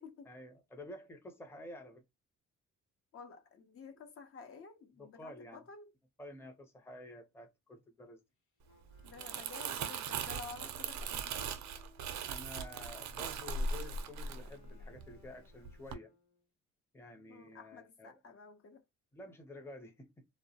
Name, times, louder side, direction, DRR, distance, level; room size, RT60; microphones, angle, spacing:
voice 1, 0.3-2.0 5.0-5.6 6.2-8.2 12.2-16.2 16.9-18.2 19.1-20.3, left 1 dB, 10° left, 0.6 m, -50 dB
voice 2, 3.1-5.9 9.0-11.5 17.3-18.8, left 4 dB, 50° left, 0.7 m, -52 dB
Wind instrument woodwind instrument, 8.6-16.5, left 5 dB, 75° left, 1.0 m, -65 dB
Crumpling crinkling, 8.9-15.3 15.6-15.9, right 5 dB, 70° right, 0.5 m, -39 dB
2.2 x 2.1 x 2.7 m
cardioid pair, 90°, 30 cm